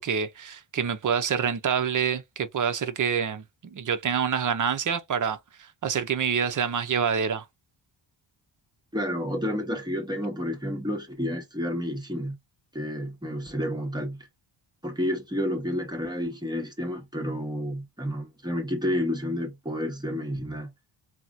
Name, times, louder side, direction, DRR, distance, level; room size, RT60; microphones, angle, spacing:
voice 1, 0.0-7.4, right 7 dB, 40° right, 0.6 m, -27 dB
voice 2, 8.9-12.4 12.7-14.2 14.8-20.7, equal, 10° right, 1.0 m, -30 dB
4.1 x 2.1 x 2.4 m
wide cardioid pair, 115°, 48 cm